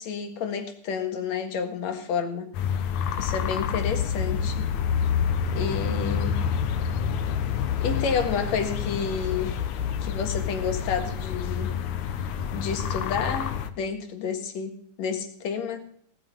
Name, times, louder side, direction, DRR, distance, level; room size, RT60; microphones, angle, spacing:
voice 1, 0.0-2.5 3.2-4.6 5.5-6.4 7.8-9.6 10.0-11.8 12.5-15.8, left 6 dB, 65° left, 6 dB, 2.9 m, -30 dB
sound 1, 2.5-13.7, left 7 dB, 85° left, 2.5 m, -28 dB
18.0 x 8.8 x 5.5 m, 0.62 s
omnidirectional pair, 3.3 m